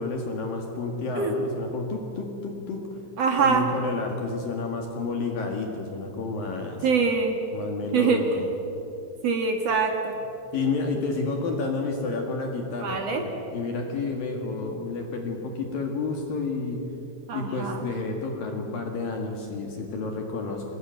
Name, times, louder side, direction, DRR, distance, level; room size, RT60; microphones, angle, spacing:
voice 1, 0.0-2.8 3.4-6.9 7.5-8.5 10.5-16.9 17.3-20.6, left 3 dB, 55° left, 2 dB, 3.1 m, -30 dB
voice 2, 3.2-3.7 6.8-7.4 7.9-8.2 9.2-10.1 12.8-13.2 17.3-17.8, right 5 dB, 60° right, 3 dB, 1.7 m, -24 dB
23.0 x 20.0 x 9.2 m, 2.9 s
omnidirectional pair, 5.6 m